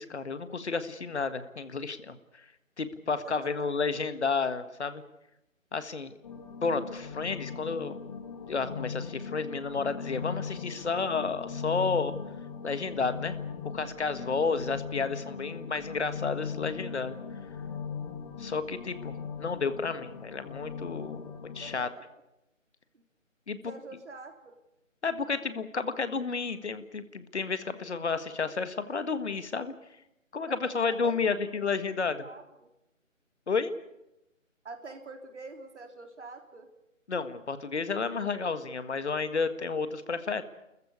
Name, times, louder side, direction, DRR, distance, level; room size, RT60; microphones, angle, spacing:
voice 1, 0.0-2.2 2.8-5.0 5.7-6.1 6.6-8.0 8.5-12.1 12.6-13.4 13.6-17.2 18.4-21.2 21.6-21.9 23.5-23.6 25.0-29.7 30.3-32.2 33.5-33.7 37.1-40.4, left 4 dB, 55° left, 11 dB, 1.7 m, -31 dB
voice 2, 3.2-3.7 21.6-22.2 23.7-24.5 30.6-31.2 31.5-32.7 34.6-36.7, right 3 dB, 60° right, 4 dB, 3.9 m, -46 dB
sound 1, 6.2-21.8, left 6 dB, 30° left, 2.1 m, -39 dB
30.0 x 14.5 x 8.4 m, 0.90 s
figure-of-eight pair, 155°, 39 cm